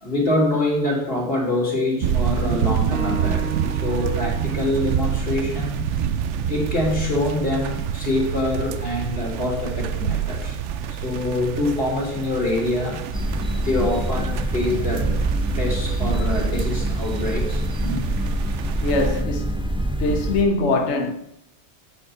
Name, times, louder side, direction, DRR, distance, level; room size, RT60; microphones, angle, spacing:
voice 1, 0.0-5.9 6.5-10.6 10.9-13.0 13.6-15.1 15.6-18.0, left 2 dB, 55° left, 3.3 m, -25 dB
sound 1, 2.0-19.2, right 8 dB, 85° right, 1.0 m, -27 dB
Acoustic guitar, 2.9-6.2, right 6 dB, 55° right, 0.9 m, -34 dB
sound 2, 13.1-20.4, right 1 dB, 5° right, 0.7 m, -25 dB
voice 2, 18.8-19.6 20.0-21.1, left 3 dB, 75° left, 1.3 m, -22 dB
10.5 x 5.3 x 7.4 m
omnidirectional pair, 1.2 m